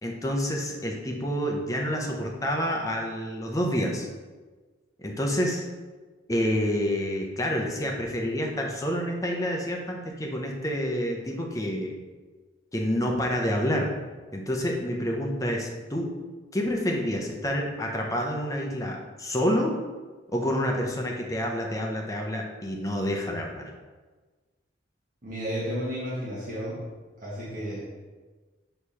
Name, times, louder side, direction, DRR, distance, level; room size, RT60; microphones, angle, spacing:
voice 1, 0.0-4.1 5.0-5.6 6.3-11.9 12.7-13.9 14.3-16.1 16.5-19.7 20.3-23.7, equal, 15° left, 0 dB, 0.8 m, -28 dB
voice 2, 25.2-26.8 27.2-27.9, equal, 45° right, -8 dB, 1.6 m, -32 dB
6.5 x 3.3 x 5.6 m, 1.3 s
head